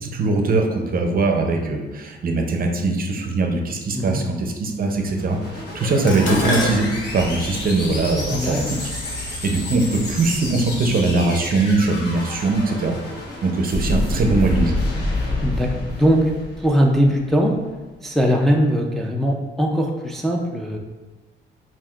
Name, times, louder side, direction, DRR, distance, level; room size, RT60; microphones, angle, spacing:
voice 1, 0.0-6.9 7.1-8.9 9.2-13.0 13.4-14.8, right 3 dB, 45° right, 3 dB, 0.6 m, -21 dB
sound 1, 5.0-17.3, left 1 dB, 55° left, 1.1 m, -29 dB
Dishes pots and pans, 6.1-10.4 11.3-11.7 12.1-12.9 13.2-13.3, left 2 dB, 70° left, 0.7 m, -29 dB
voice 2, 8.3-8.6 15.4-16.3 16.6-17.5 18.0-20.8, equal, ahead, 0 dB, 0.4 m, -20 dB
5.4 x 2.5 x 2.4 m, 1.2 s
cardioid pair, 90°, 20 cm